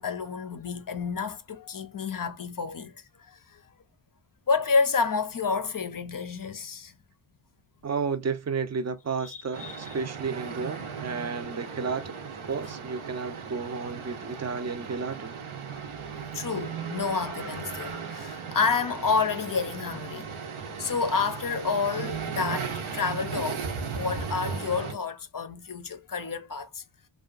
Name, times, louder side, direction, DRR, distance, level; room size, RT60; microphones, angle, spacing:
voice 1, 0.0-3.6 4.5-6.9 9.2-10.0 16.3-20.3 20.7-23.6 23.9-26.8, left 5 dB, 45° left, 0.5 m, -29 dB
voice 2, 7.8-15.4, right 5 dB, 35° right, 0.5 m, -32 dB
sound 1, 9.5-24.9, right 6 dB, 75° right, 0.7 m, -36 dB
2.7 x 2.3 x 2.4 m
wide cardioid pair, 60°, 50 cm